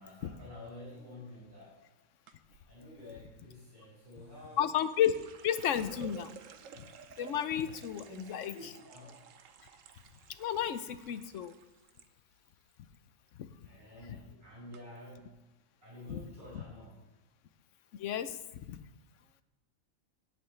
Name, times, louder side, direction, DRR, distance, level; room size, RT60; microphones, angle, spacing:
voice 1, 0.0-2.0 2.5-4.6 8.0-9.2 13.6-15.4 15.8-17.1, left 1 dB, 40° right, -6 dB, 5.0 m, -50 dB
sound 1, 2.3-2.7 4.1-12.1 12.4-13.0 13.3-13.6 14.3-14.4 14.7-14.8, right 7 dB, 75° right, 1.1 m, -54 dB
voice 2, 4.6-5.1 5.4-6.4 6.8-6.9 7.2-8.5 10.4-11.5 13.4-13.5 14.0-14.2 16.1-16.2 16.5-16.6 18.0-18.8, left 9 dB, 70° left, 12 dB, 1.0 m, -32 dB
17.5 x 8.1 x 3.2 m, 1.1 s
omnidirectional pair, 1.4 m